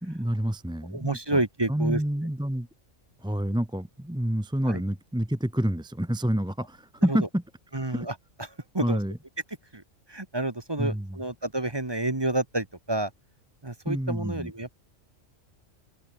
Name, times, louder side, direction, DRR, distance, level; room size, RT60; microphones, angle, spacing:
voice 1, 0.0-1.4 1.7-2.7 3.2-7.4 7.9-8.1 8.8-9.2 10.8-11.2 13.9-14.5, equal, 5° right, 0.9 m, -28 dB
voice 2, 0.9-2.0 4.6-4.8 7.1-7.2 7.7-8.1 8.4-8.5 8.7-9.0 9.7-9.8 10.1-13.1 13.6-14.8, right 2 dB, 20° right, 1.5 m, -29 dB
omnidirectional pair, 1.3 m